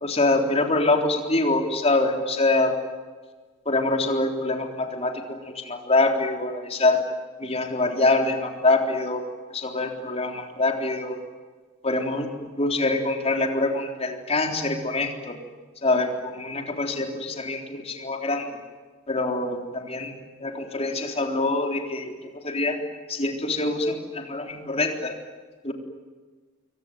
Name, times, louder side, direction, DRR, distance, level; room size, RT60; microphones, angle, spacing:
voice 1, 0.0-2.7 3.7-7.0 7.4-9.3 9.5-11.2 11.8-15.4 15.8-18.5 19.1-20.1 20.4-22.1 22.4-22.8 23.1-25.2 25.6-25.7, left 2 dB, 30° left, 3 dB, 3.7 m, -25 dB
27.5 x 23.0 x 9.3 m, 1.4 s
head